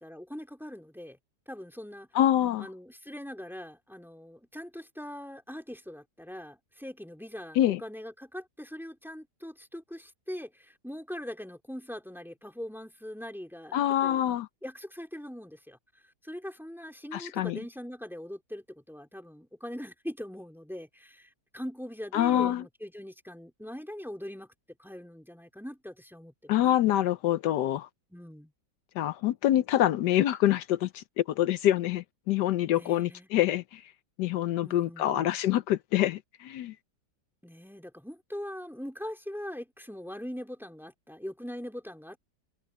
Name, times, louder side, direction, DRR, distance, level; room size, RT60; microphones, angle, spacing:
voice 1, 0.0-1.2 1.5-2.1 2.6-14.2 14.6-15.8 16.2-24.5 24.8-26.6 28.1-28.5 32.7-33.3 34.6-35.4 37.4-42.2, equal, ahead, 2.6 m, -42 dB
voice 2, 2.1-2.7 7.6-7.8 13.7-14.5 17.1-17.6 22.1-22.6 26.5-27.9 29.0-33.8 34.2-36.7, left 12 dB, 80° left, 1.3 m, -26 dB
omnidirectional pair, 1.8 m